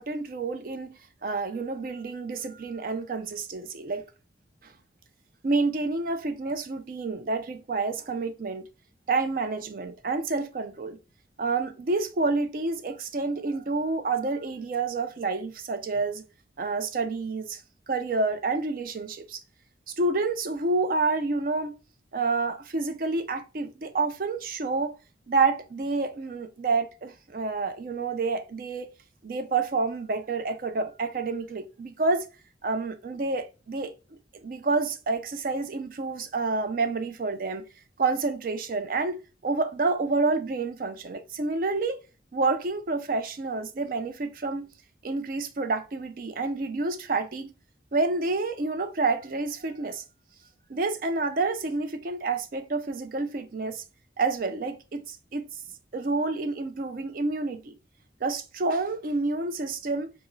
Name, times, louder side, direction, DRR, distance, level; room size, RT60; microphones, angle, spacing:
voice 1, 0.0-4.0 4.6-4.7 5.4-8.6 9.1-11.0 11.4-16.2 16.6-17.6 17.9-19.4 19.9-21.8 22.1-24.9 25.3-28.9 29.2-32.2 32.6-33.9 34.4-37.6 38.0-39.2 39.4-42.0 42.3-44.7 45.0-47.5 47.9-50.0 50.7-53.8 54.2-55.5 55.9-57.7 58.2-60.1, right 3 dB, 50° right, 0.4 m, -28 dB
4.7 x 2.0 x 2.6 m
head